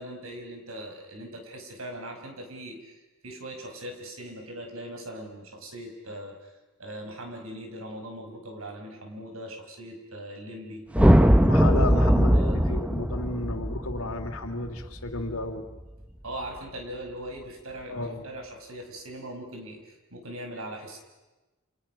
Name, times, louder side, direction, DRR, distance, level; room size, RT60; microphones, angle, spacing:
voice 1, 0.0-6.5 6.8-10.9 11.9-12.6 16.2-21.0, right 1 dB, 75° right, 4 dB, 5.4 m, -40 dB
sound 1, 10.9-15.3, equal, 5° right, 0.8 m, -20 dB
voice 2, 11.0-15.7 17.9-18.2, left 2 dB, 75° left, 6 dB, 2.9 m, -33 dB
29.0 x 28.0 x 5.9 m, 1.1 s
head